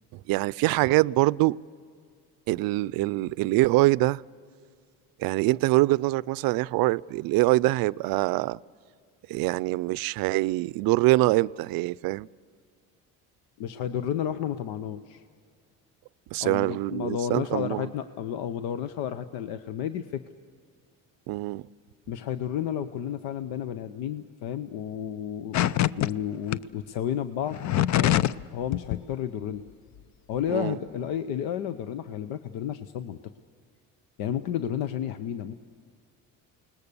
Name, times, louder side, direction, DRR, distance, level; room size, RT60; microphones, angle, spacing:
voice 1, 0.1-1.6 2.5-4.2 5.2-8.6 9.3-12.3 16.3-17.9 21.3-21.6 30.5-30.8, right 19 dB, 70° right, 0.5 m, -24 dB
voice 2, 13.6-15.2 16.4-20.2 22.1-27.6 27.9-28.3 28.5-29.6 30.3-33.2 34.2-35.5, left 9 dB, 80° left, 0.9 m, -32 dB
sound 1, 25.5-26.1 26.5-26.6 27.5-28.4 28.7-29.0, left 13 dB, 50° left, 0.6 m, -23 dB
28.5 x 20.0 x 6.9 m
cardioid pair, 100°, 37 cm